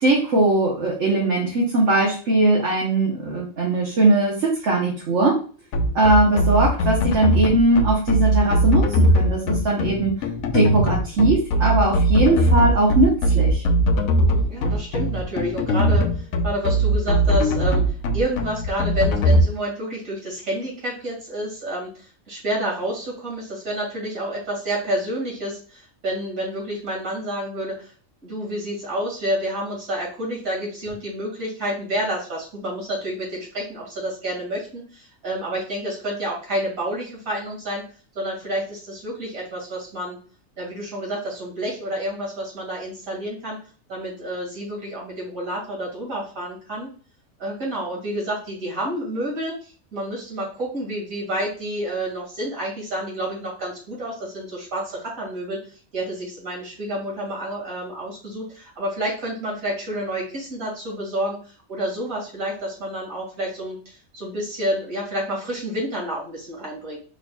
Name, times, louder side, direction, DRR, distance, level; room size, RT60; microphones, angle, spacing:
voice 1, 0.0-5.3 5.9-10.1 10.5-13.6, right 2 dB, 60° right, -3 dB, 1.4 m, -20 dB
sound 1, 5.7-19.4, right 1 dB, 80° left, 1.1 m, -19 dB
voice 2, 14.2-27.9 28.2-37.9 38.1-40.2 40.6-43.6 43.9-46.9 47.4-55.6 55.9-67.0, right 1 dB, 75° right, -3 dB, 2.7 m, -29 dB
5.0 x 4.1 x 2.3 m, 0.41 s
omnidirectional pair, 1.4 m